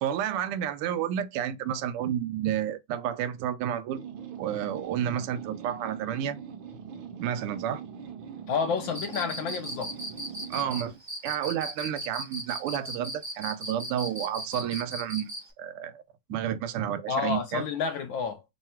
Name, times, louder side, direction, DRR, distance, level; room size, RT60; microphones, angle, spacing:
voice 1, 0.0-4.0 4.4-6.4 7.2-7.8 10.5-11.0 11.2-16.0 16.3-17.6, right 10 dB, 85° right, 1.5 m, -31 dB
sound 1, 3.9-11.0, right 7 dB, 70° right, 1.5 m, -42 dB
voice 2, 8.5-9.9 17.1-18.4, left 6 dB, 70° left, 1.3 m, -30 dB
Cricket, 8.9-15.5, right 1 dB, 25° right, 0.6 m, -37 dB
3.8 x 2.2 x 4.3 m
omnidirectional pair, 2.4 m